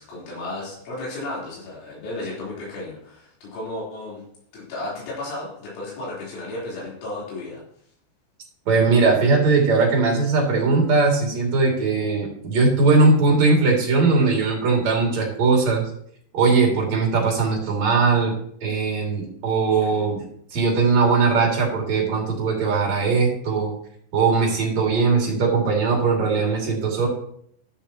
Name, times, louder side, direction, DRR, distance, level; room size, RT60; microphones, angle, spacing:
voice 1, 0.0-4.2 4.5-7.6, left 2 dB, 90° left, -6 dB, 6.3 m, -33 dB
voice 2, 8.7-15.8 16.3-18.3 18.6-20.2 20.5-23.7 24.1-27.1, right 4 dB, 45° right, -1 dB, 3.2 m, -19 dB
12.0 x 11.5 x 3.0 m, 0.65 s
omnidirectional pair, 5.3 m